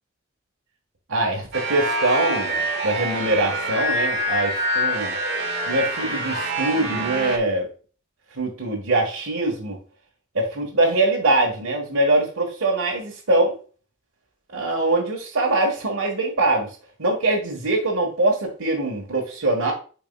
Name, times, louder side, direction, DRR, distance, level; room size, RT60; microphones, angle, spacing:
voice 1, 1.1-5.1 5.7-7.7 8.3-9.8 10.3-13.6 14.5-19.7, right 2 dB, 85° right, -3 dB, 1.5 m, -23 dB
sound 1, 1.5-7.4, right 1 dB, 50° right, 1.6 m, -25 dB
9.3 x 4.6 x 2.3 m, 0.40 s
head